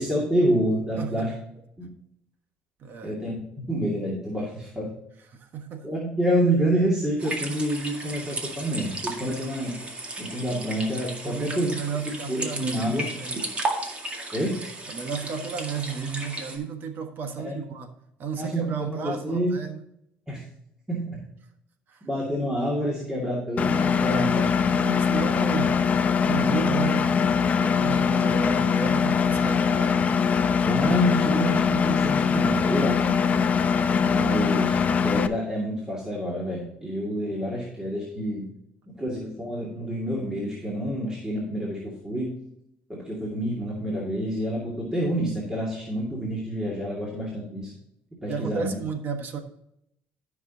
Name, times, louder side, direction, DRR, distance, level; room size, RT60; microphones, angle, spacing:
voice 1, 0.0-1.3 1.8-1.9 3.0-4.9 5.8-9.8 10.2-11.7 12.1-13.1 14.3-14.6 17.4-17.6 18.3-19.5 20.3-20.4 20.9-21.2 22.0-25.0 30.6-33.2 34.0-38.5 39.0-42.3 42.9-47.7 48.2-48.8, right 1 dB, 15° right, -4 dB, 2.4 m, -28 dB
voice 2, 1.0-1.3 2.8-3.1 4.4-4.5 5.3-5.9 11.2-12.8 13.2-13.5 14.9-17.9 18.2-19.8 21.9-22.0 24.0-24.3 24.9-25.7 26.2-30.1 48.3-49.4, right 5 dB, 55° right, 7 dB, 1.3 m, -33 dB
sound 1, 7.2-16.6, right 2 dB, 30° right, 2.0 m, -34 dB
Engine, 23.6-35.3, left 6 dB, 35° left, 0.7 m, -22 dB
13.5 x 6.0 x 2.9 m, 0.78 s
cardioid pair, 115°, 4 cm